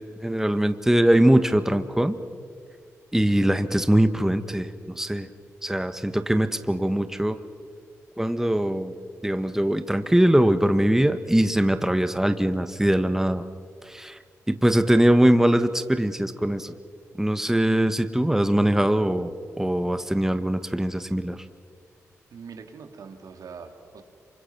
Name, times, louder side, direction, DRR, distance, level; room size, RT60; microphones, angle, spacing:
voice 1, 0.0-2.2 3.1-5.3 5.6-7.4 8.2-8.9 9.2-13.4 13.8-14.2 14.5-16.7 17.2-21.4, right 1 dB, 5° right, 10 dB, 1.5 m, -22 dB
voice 2, 22.3-24.0, right 5 dB, 75° right, 6 dB, 2.6 m, -42 dB
27.5 x 25.0 x 6.1 m, 2.1 s
supercardioid pair, 45°, 6 cm